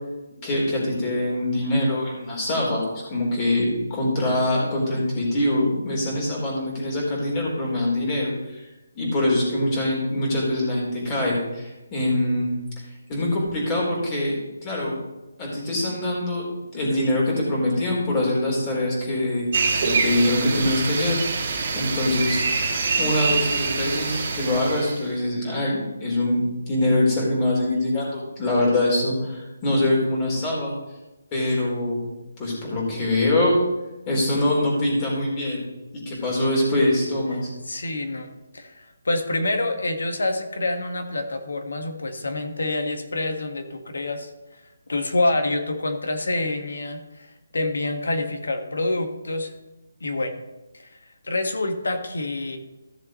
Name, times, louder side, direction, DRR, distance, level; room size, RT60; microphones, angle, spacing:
voice 1, 0.4-2.8 3.1-8.6 9.0-12.5 13.1-15.0 15.4-16.5 16.7-19.5 19.7-21.5 21.7-22.4 23.0-30.7 31.3-32.1 32.4-33.6 34.1-35.6 35.9-37.5, left 1 dB, 20° left, -3 dB, 3.8 m, -24 dB
sound 1, 19.5-25.0, right 4 dB, 45° right, 1.8 m, -25 dB
voice 2, 37.3-44.3 44.9-47.3 47.5-49.5 50.0-50.3 50.8-50.9 51.2-52.6, left 2 dB, 80° left, 7 dB, 1.6 m, -27 dB
14.5 x 7.1 x 3.1 m, 1.0 s
hypercardioid pair, 165°, 0 cm